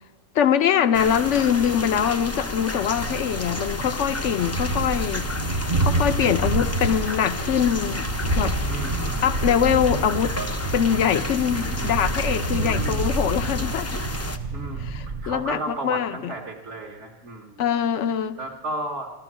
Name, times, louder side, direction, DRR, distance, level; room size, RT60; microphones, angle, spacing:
voice 1, 0.3-5.3 5.8-8.1 8.3-8.6 9.2-10.4 10.7-14.0 14.8-16.3 17.6-18.4, left 8 dB, 65° left, 0.9 m, -23 dB
sound 1, 0.9-14.4, left 2 dB, 20° left, 0.5 m, -31 dB
Thunder, 2.8-15.5, right 2 dB, 40° right, 0.7 m, -28 dB
sound 2, 7.9-8.5, left 1 dB, 40° left, 0.8 m, -37 dB
voice 2, 8.7-9.3 12.6-13.1 14.5-17.6 18.4-19.1, right 2 dB, 55° right, 1.6 m, -34 dB
15.0 x 12.5 x 7.4 m
omnidirectional pair, 1.4 m